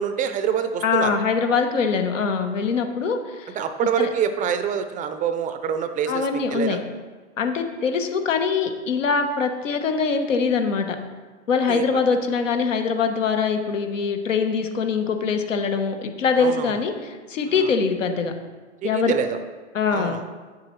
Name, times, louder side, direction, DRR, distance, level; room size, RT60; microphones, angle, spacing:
voice 1, 0.0-1.2 3.6-6.8 11.7-11.8 16.4-16.7 18.8-19.4 19.9-20.2, right 7 dB, 20° right, 9 dB, 0.4 m, -25 dB
voice 2, 0.8-3.5 4.0-4.1 6.1-6.8 7.4-11.0 11.5-18.3 18.8-19.1 19.7-20.2, left 5 dB, 85° left, 6 dB, 1.1 m, -23 dB
8.9 x 7.5 x 3.1 m, 1.4 s
hypercardioid pair, 105°, 37 cm